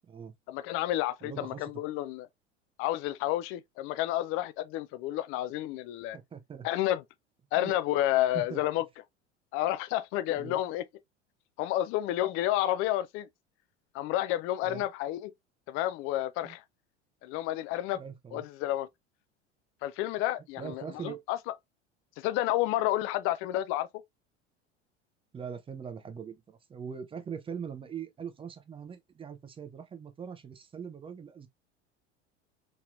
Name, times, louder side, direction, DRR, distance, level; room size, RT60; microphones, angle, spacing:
voice 1, 0.5-2.3 2.8-6.2 6.6-7.0 7.5-8.8 9.5-10.8 11.6-13.3 13.9-15.3 15.7-16.6 17.2-18.0 18.3-18.9 19.8-21.4 22.2-23.9, left 14 dB, 40° left, 0.4 m, -30 dB
voice 2, 1.2-1.7 6.1-6.7 7.5-7.7 8.3-8.6 10.4-10.6 14.6-14.8 16.4-16.6 17.9-18.5 20.6-21.2 25.3-31.5, right 7 dB, 15° right, 0.5 m, -41 dB
3.0 x 2.9 x 2.4 m
hypercardioid pair, 80°, 35 cm